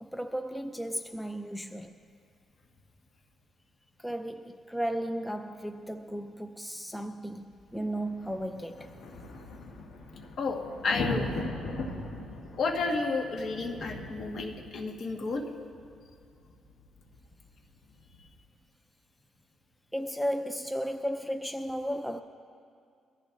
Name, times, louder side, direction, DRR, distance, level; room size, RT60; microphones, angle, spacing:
voice 1, 0.0-2.0 4.0-8.9 19.9-22.2, equal, 5° left, 0.5 m, -34 dB
sound 1, 7.5-18.4, left 2 dB, 80° left, 2.1 m, -40 dB
voice 2, 10.4-11.3 12.6-15.4, left 3 dB, 55° left, 1.7 m, -31 dB
23.0 x 14.5 x 2.7 m
cardioid pair, 90°, 0 cm